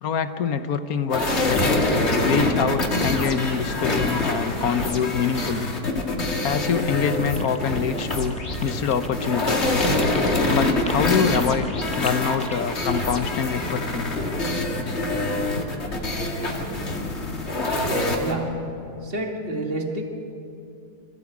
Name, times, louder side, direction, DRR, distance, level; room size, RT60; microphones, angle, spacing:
voice 1, 0.0-1.7 2.2-5.7 6.4-9.7 10.5-11.7 12.0-14.1, left 7 dB, 65° left, 10 dB, 1.2 m, -25 dB
sound 1, 1.1-18.3, left 2 dB, 40° left, 2.4 m, -25 dB
sound 2, 7.4-12.7, left 1 dB, 10° left, 0.4 m, -38 dB
voice 2, 18.2-20.0, right 1 dB, 35° right, 2 dB, 2.3 m, -29 dB
26.0 x 16.0 x 8.2 m, 2.7 s
omnidirectional pair, 1.8 m